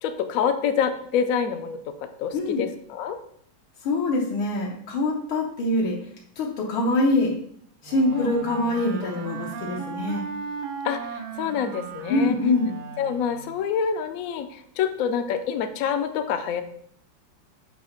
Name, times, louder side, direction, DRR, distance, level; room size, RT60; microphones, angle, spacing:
voice 1, 0.0-1.8 2.2-3.2 8.1-8.3 10.8-12.4 13.0-16.6, left 7 dB, 65° left, 7 dB, 0.8 m, -26 dB
voice 2, 2.3-2.6 3.8-6.0 6.4-7.4 7.8-10.2 12.1-12.8, left 2 dB, 85° left, -3 dB, 1.8 m, -24 dB
Wind instrument woodwind instrument, 7.8-13.6, right 5 dB, 80° right, 1.5 m, -36 dB
7.4 x 2.9 x 5.7 m, 0.64 s
omnidirectional pair, 2.2 m